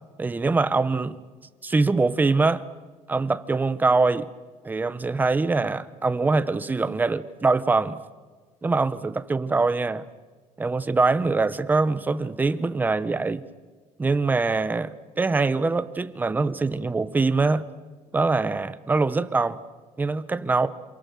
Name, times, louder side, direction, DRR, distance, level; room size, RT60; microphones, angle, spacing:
voice 1, 0.2-1.2 1.6-2.6 3.1-4.3 4.6-8.0 8.6-10.0 10.6-13.4 14.0-17.6 18.1-19.6 20.0-20.7, right 3 dB, 15° right, 14 dB, 0.9 m, -23 dB
27.5 x 27.0 x 6.9 m, 1.4 s
cardioid pair, 150°, 13 cm